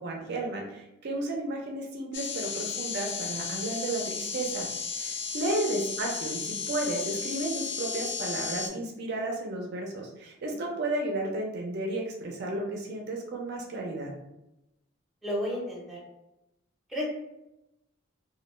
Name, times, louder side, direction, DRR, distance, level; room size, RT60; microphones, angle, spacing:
voice 1, 0.0-4.7 5.0-14.1, right 2 dB, 55° right, 0 dB, 0.4 m, -33 dB
sound 1, 2.1-8.7, left 5 dB, 60° left, 0.4 m, -34 dB
voice 2, 15.2-16.0 16.9-17.0, equal, ahead, -6 dB, 0.6 m, -32 dB
2.2 x 2.1 x 3.0 m, 0.91 s
head